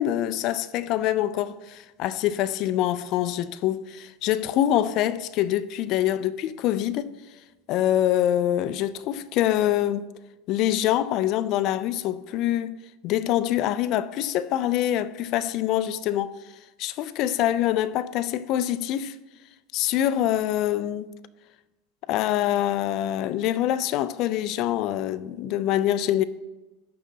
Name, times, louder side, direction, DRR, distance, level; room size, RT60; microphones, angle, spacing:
voice 1, 0.0-7.1 7.7-10.1 10.5-12.8 13.0-16.3 16.8-19.2 19.7-21.0 22.1-26.2, left 12 dB, 50° left, 0.5 m, -25 dB
11.5 x 3.9 x 7.5 m
hypercardioid pair, 105°, 0 cm